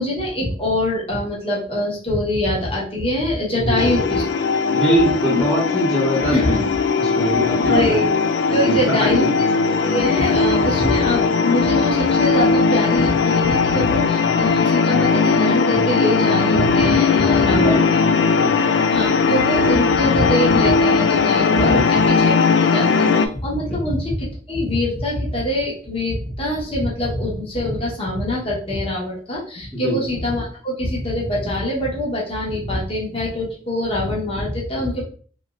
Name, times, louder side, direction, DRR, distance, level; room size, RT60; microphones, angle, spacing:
voice 1, 0.0-4.2 5.3-5.4 6.2-6.6 7.2-8.1 8.5-9.3 9.8-17.8 18.9-22.4 22.7-35.0, left 1 dB, 30° left, -5 dB, 1.0 m, -24 dB
voice 2, 3.5-4.0 4.7-6.6 7.0-8.0 8.6-9.3 17.5-18.0 18.4-18.6 21.6-21.8 23.7-23.8 29.7-30.0, right 1 dB, 5° left, -7 dB, 1.0 m, -22 dB
sound 1, 3.8-23.3, left 4 dB, 70° left, 0.3 m, -18 dB
3.0 x 2.9 x 2.4 m, 0.43 s
head